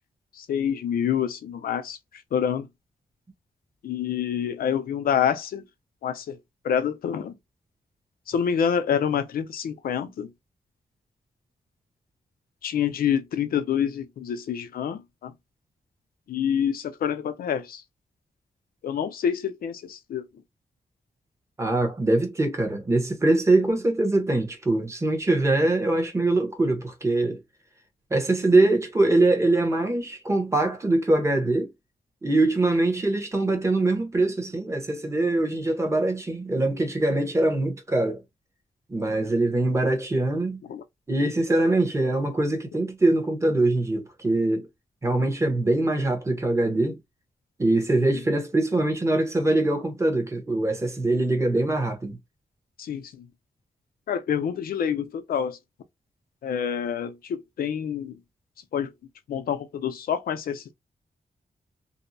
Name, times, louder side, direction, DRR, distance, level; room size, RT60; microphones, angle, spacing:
voice 1, 0.3-2.0 2.3-2.7 3.8-5.6 6.0-6.4 6.6-7.3 8.3-10.3 12.6-15.3 16.3-17.8 18.8-20.3 40.7-40.8 48.1-48.2 52.8-53.3 54.1-55.6 56.4-58.2 58.7-58.9 59.3-60.7, left 8 dB, 90° left, 0.4 m, -27 dB
voice 2, 21.6-27.4 28.1-31.7 32.2-38.2 38.9-40.6 41.1-44.7 45.0-47.0 47.6-52.2, right 2 dB, 20° right, 0.8 m, -23 dB
2.6 x 2.0 x 2.5 m
wide cardioid pair, 125°, 15 cm